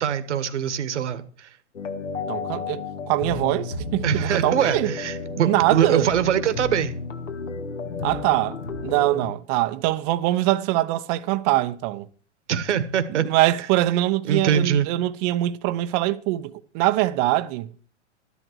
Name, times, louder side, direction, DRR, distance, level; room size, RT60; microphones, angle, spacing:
voice 1, 0.0-1.5 4.0-6.9 12.5-13.2 14.2-14.9, right 8 dB, 70° right, 1.5 m, -23 dB
sound 1, 1.7-9.3, left 4 dB, 80° left, 2.3 m, -32 dB
voice 2, 2.3-4.9 5.4-6.1 8.0-8.6 8.8-12.1 13.2-17.7, right 16 dB, 35° right, 0.7 m, -23 dB
13.0 x 11.0 x 4.6 m
hypercardioid pair, 120°, 37 cm